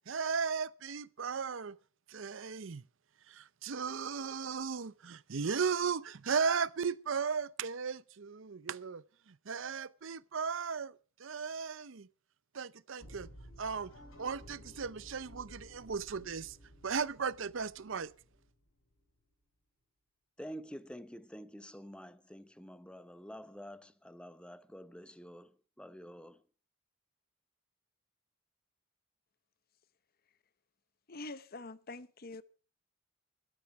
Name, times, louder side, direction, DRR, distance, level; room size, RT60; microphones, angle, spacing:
voice 1, 0.1-1.8 2.1-2.8 3.3-10.9 11.2-12.1 12.5-13.3 13.6-13.9 14.2-16.6 16.8-18.1, right 5 dB, 60° right, 0.6 m, -36 dB
sound 1, 13.0-19.0, equal, 80° left, 7.7 m, -55 dB
voice 2, 20.4-26.4, equal, 5° left, 0.7 m, -48 dB
voice 3, 31.1-32.4, left 2 dB, 45° left, 0.8 m, -45 dB
13.0 x 12.5 x 5.9 m
head